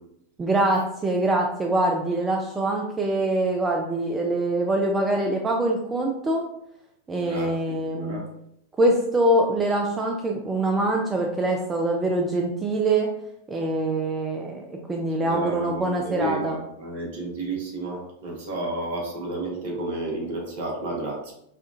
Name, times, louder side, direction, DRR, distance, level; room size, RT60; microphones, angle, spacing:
voice 1, 0.4-6.4 7.1-8.2 8.8-13.1 13.5-16.6, right 1 dB, 15° right, 1 dB, 0.4 m, -24 dB
voice 2, 7.2-8.3 15.2-21.3, right 2 dB, 55° right, -1 dB, 1.0 m, -32 dB
4.3 x 2.3 x 2.5 m, 0.75 s
figure-of-eight pair, 90°, 0 cm